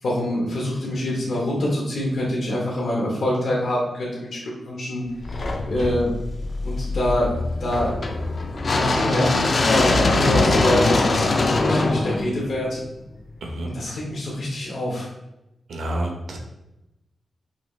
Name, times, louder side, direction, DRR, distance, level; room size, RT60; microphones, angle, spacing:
voice 1, 0.0-6.1 6.6-12.8 13.6-15.1, left 1 dB, 70° left, -5 dB, 1.1 m, -26 dB
sound 1, 5.2-13.3, left 2 dB, 40° left, 0.4 m, -22 dB
voice 2, 15.7-16.4, right 1 dB, 85° right, 2 dB, 0.9 m, -28 dB
5.6 x 2.5 x 3.3 m, 0.93 s
wide cardioid pair, 175°, 0 cm